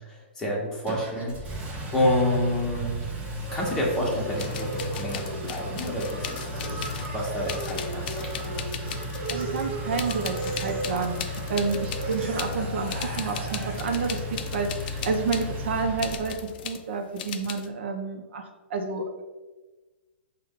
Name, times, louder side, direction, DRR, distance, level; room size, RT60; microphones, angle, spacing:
voice 1, 0.0-3.0 3.5-6.9 7.1-8.6, left 1 dB, 10° left, -4 dB, 1.0 m, -29 dB
Engine, 0.9-16.6, left 1 dB, 20° right, 0.6 m, -35 dB
sound 1, 3.5-14.2, right 2 dB, 45° right, 1.1 m, -37 dB
sound 2, 4.4-7.2 7.5-9.7 9.9-12.6 12.9-15.5 16.0-16.8 17.2-17.7, left 8 dB, 50° left, 0.4 m, -38 dB
voice 2, 9.3-18.4 18.7-19.2, right 4 dB, 70° right, 4 dB, 0.5 m, -30 dB
5.3 x 2.2 x 3.6 m, 1.2 s
hypercardioid pair, 145°, 6 cm